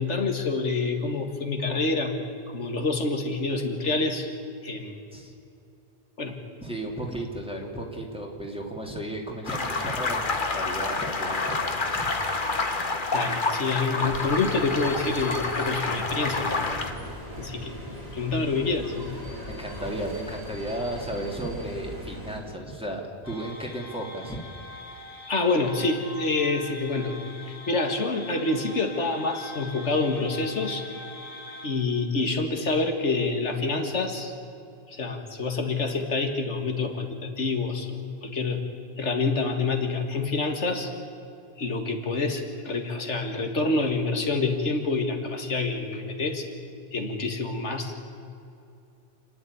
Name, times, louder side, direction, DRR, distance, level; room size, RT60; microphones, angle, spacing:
voice 1, 0.0-2.3 2.5-4.3 4.6-5.0 6.2-6.4 13.1-16.5 17.4-17.8 18.1-18.9 25.3-27.2 27.5-30.9 31.6-34.3 34.9-38.6 39.0-40.9 41.6-46.5 46.9-48.1, left 3 dB, 85° left, 4 dB, 2.1 m, -27 dB
voice 2, 6.6-12.1 19.5-24.4 36.9-37.1, right 1 dB, 5° right, 0 dB, 2.6 m, -34 dB
sound 1, 9.5-16.9, left 3 dB, 45° left, 1.6 m, -28 dB
sound 2, 14.0-22.4, equal, 35° right, 4.9 m, -39 dB
sound 3, 23.2-31.7, left 1 dB, 70° left, 2.9 m, -42 dB
28.5 x 9.9 x 9.7 m, 2.6 s
omnidirectional pair, 1.2 m